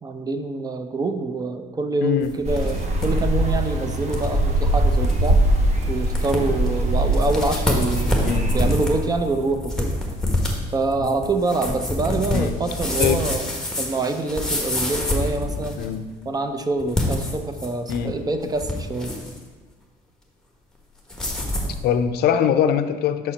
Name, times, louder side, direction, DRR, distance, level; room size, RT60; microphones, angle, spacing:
voice 1, 0.0-5.4 5.9-9.9 10.7-13.5 13.8-15.8 16.3-19.1, right 3 dB, 20° right, 7 dB, 0.5 m, -25 dB
sound 1, 2.2-3.1 3.4-3.5 4.1-4.3 4.7-4.8 5.0-5.3 5.8-5.9 6.2-6.7 7.1-15.9 16.8-18.1 18.4-19.4 21.1-21.8, left 1 dB, 5° left, 1.2 m, -26 dB
sound 2, 2.4-9.3, right 1 dB, 40° right, 1.0 m, -22 dB
voice 2, 15.8-16.1 17.9-18.2 21.8-23.3, left 8 dB, 70° left, 9 dB, 0.5 m, -22 dB
6.0 x 4.2 x 5.1 m, 1.3 s
cardioid pair, 110°, 17 cm